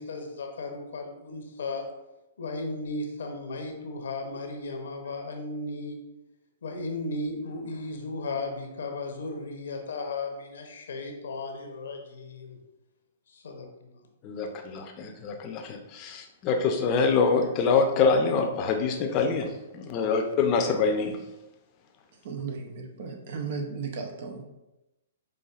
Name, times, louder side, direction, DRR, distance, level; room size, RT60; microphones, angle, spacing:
voice 1, 0.0-1.9 2.4-6.0 6.6-12.6 13.3-13.9, left 2 dB, 75° left, 0.7 m, -35 dB
voice 2, 14.2-19.5 19.7-21.2, left 5 dB, 35° left, 0.6 m, -25 dB
voice 3, 22.1-24.4, right 5 dB, 60° right, 0.7 m, -35 dB
5.5 x 2.6 x 2.4 m
hypercardioid pair, 125°, 0 cm